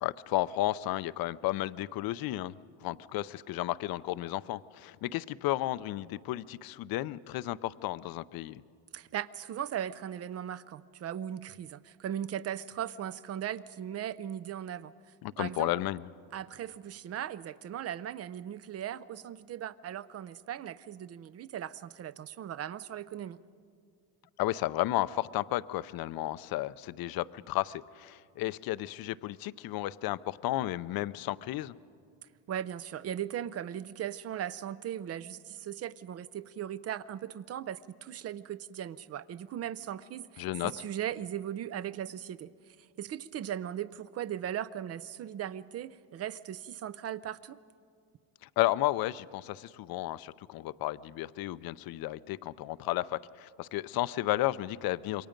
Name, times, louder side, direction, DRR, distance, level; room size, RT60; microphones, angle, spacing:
voice 1, 0.0-2.5 2.8-8.6 15.2-16.1 24.4-31.7 40.4-40.7 48.6-55.3, left 16 dB, 50° left, 17 dB, 0.6 m, -33 dB
voice 2, 8.9-14.9 15.4-15.7 16.3-23.4 32.5-47.6, right 10 dB, 35° right, 17 dB, 0.4 m, -38 dB
27.5 x 22.5 x 5.2 m, 2.3 s
cardioid pair, 110°, 48 cm